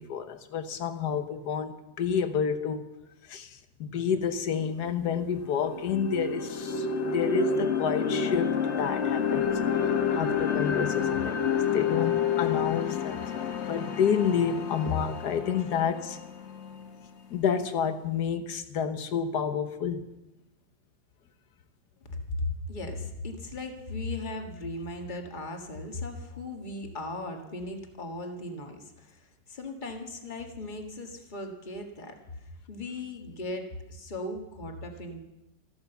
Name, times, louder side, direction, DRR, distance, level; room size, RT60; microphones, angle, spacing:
voice 1, 0.0-2.9 3.3-16.2 17.3-20.0, left 7 dB, 65° left, 10 dB, 1.5 m, -30 dB
sound 1, 4.6-4.7 5.1-17.2, left 6 dB, 45° left, 1.1 m, -29 dB
voice 2, 22.1-35.2, left 2 dB, 25° left, 3 dB, 1.7 m, -37 dB
14.0 x 12.5 x 6.9 m, 0.94 s
omnidirectional pair, 2.0 m